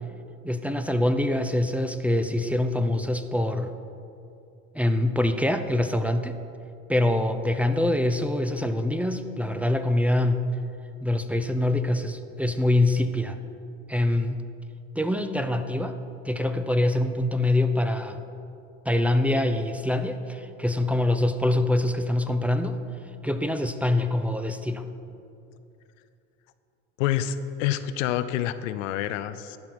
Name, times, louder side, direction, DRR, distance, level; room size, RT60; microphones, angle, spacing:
voice 1, 0.4-3.7 4.7-6.3 6.9-10.4 11.0-13.4 13.9-14.4 15.0-15.9 16.2-18.3 18.9-22.8 23.2-24.8, left 1 dB, 5° right, 7 dB, 0.6 m, -24 dB
voice 2, 27.0-29.6, left 11 dB, 85° left, 12 dB, 0.6 m, -27 dB
12.0 x 4.4 x 7.7 m, 2.6 s
hypercardioid pair, 65°, 37 cm